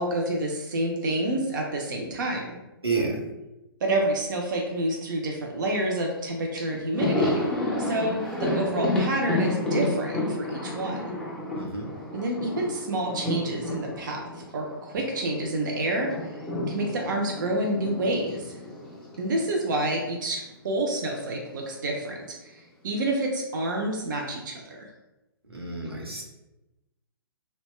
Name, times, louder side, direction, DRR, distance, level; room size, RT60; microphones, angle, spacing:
voice 1, 0.0-2.6 3.8-7.5 7.8-11.1 12.1-16.3 16.7-18.6 19.2-24.9, right 1 dB, 50° right, 0 dB, 0.5 m, -28 dB
voice 2, 2.8-3.2 11.6-11.9 25.5-26.2, right 4 dB, 80° right, -1 dB, 0.8 m, -29 dB
Thunder, 6.2-6.3 6.6-15.4 15.6-20.0 20.2-20.4 21.5-22.2, left 1 dB, 5° left, 0.5 m, -31 dB
2.8 x 2.2 x 3.0 m, 1.0 s
figure-of-eight pair, 120°, 13 cm